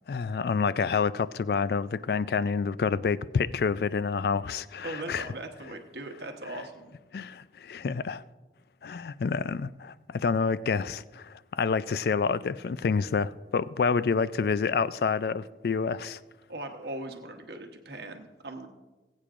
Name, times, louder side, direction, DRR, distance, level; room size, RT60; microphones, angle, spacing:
voice 1, 0.1-5.3 7.1-8.2 8.8-16.2, left 5 dB, 60° left, 0.3 m, -28 dB
voice 2, 4.8-6.9 16.5-18.7, right 2 dB, 70° right, 1.1 m, -39 dB
20.5 x 8.6 x 2.5 m
head